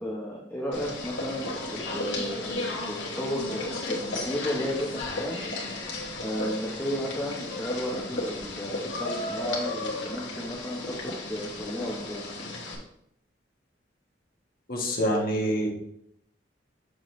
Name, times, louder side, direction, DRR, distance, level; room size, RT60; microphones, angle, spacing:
voice 1, 0.0-1.5 1.7-5.4 6.2-12.3, equal, 10° left, -5 dB, 1.0 m, -33 dB
sound 1, 0.7-12.8, left 2 dB, 90° left, 1.6 m, -34 dB
voice 2, 14.7-15.7, equal, 55° left, 0 dB, 1.5 m, -26 dB
6.5 x 6.3 x 3.2 m, 0.75 s
head